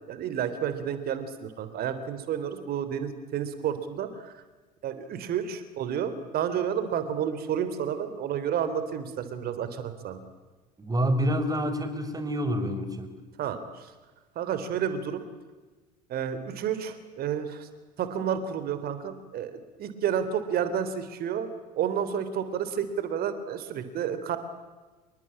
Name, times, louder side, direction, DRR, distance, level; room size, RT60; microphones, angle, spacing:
voice 1, 0.0-4.4 4.8-10.2 13.4-13.9 14.4-15.3 16.1-17.7 18.0-21.5 21.7-24.4, right 8 dB, 45° right, 11 dB, 3.6 m, -30 dB
voice 2, 10.8-13.1, equal, 15° right, 10 dB, 5.2 m, -27 dB
28.0 x 23.0 x 8.9 m, 1.3 s
hypercardioid pair, 70°, 21 cm